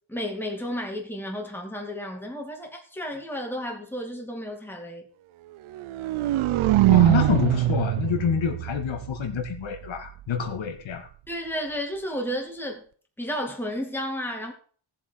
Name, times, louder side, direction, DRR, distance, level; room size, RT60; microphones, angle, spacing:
voice 1, 0.1-5.1 11.3-12.8 13.2-14.5, equal, 5° left, 2.6 m, -32 dB
sound 1, 5.7-9.8, right 16 dB, 70° right, 0.6 m, -23 dB
voice 2, 6.9-11.1, left 7 dB, 65° left, 2.3 m, -27 dB
17.5 x 7.7 x 4.7 m
wide cardioid pair, 160°, 50 cm